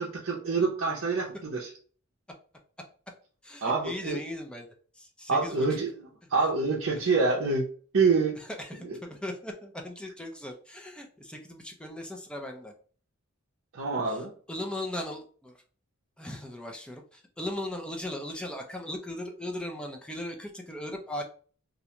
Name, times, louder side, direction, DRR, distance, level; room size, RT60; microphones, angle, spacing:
voice 1, 0.0-1.7 3.6-4.2 5.3-5.9 6.3-7.7 7.9-8.4 8.8-9.0 13.7-14.3, right 4 dB, 65° right, -5 dB, 0.6 m, -26 dB
voice 2, 3.4-4.7 4.9-5.8 7.0-7.1 8.4-12.7 14.1-15.5 16.2-21.2, left 1 dB, 5° left, 2 dB, 0.4 m, -38 dB
2.4 x 2.2 x 2.8 m, 0.42 s
head